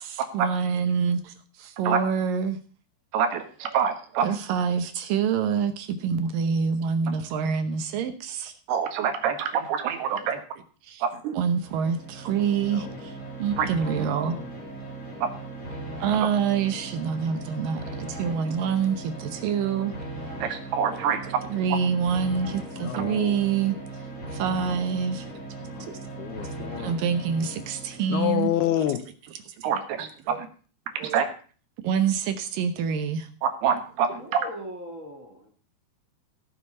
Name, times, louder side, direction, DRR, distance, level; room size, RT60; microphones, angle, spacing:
voice 1, 0.3-2.6 4.2-8.5 10.8-11.0 11.3-14.4 16.0-19.9 21.5-23.8 24.3-25.3 26.8-28.5 29.4-29.7 31.0-31.1 31.8-33.3, right 6 dB, 70° right, 9 dB, 2.5 m, -26 dB
voice 2, 3.1-4.4 8.7-10.4 11.0-11.4 13.6-13.7 20.4-21.4 22.9-23.0 29.6-30.5 31.0-31.3 33.4-34.4, right 7 dB, 85° right, 6 dB, 3.5 m, -26 dB
sound 1, 11.5-28.3, right 2 dB, 20° left, 3.9 m, -38 dB
voice 3, 22.7-23.4 25.6-25.9 26.2-26.9 28.1-29.0, left 12 dB, 80° left, 10 dB, 2.7 m, -28 dB
voice 4, 34.1-35.5, equal, 40° right, 1 dB, 1.1 m, -40 dB
16.5 x 6.9 x 5.4 m, 0.40 s
omnidirectional pair, 4.5 m